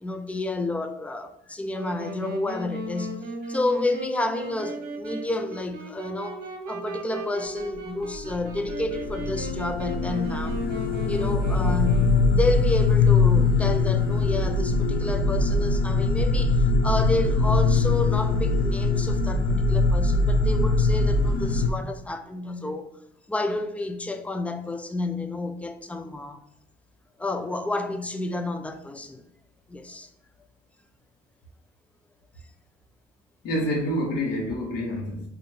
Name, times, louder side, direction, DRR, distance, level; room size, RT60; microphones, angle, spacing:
voice 1, 0.0-6.4 6.7-10.6 11.1-22.9 23.3-26.4 27.2-29.2 29.7-30.1, left 2 dB, 10° left, 0.3 m, -30 dB
Wind instrument woodwind instrument, 1.7-12.6, right 2 dB, 65° right, 0.9 m, -36 dB
sound 1, 8.1-21.7, left 3 dB, 60° left, 0.5 m, -22 dB
voice 2, 33.4-35.3, equal, 80° left, 1.1 m, -27 dB
4.6 x 2.5 x 2.7 m
cardioid pair, 110°, 17 cm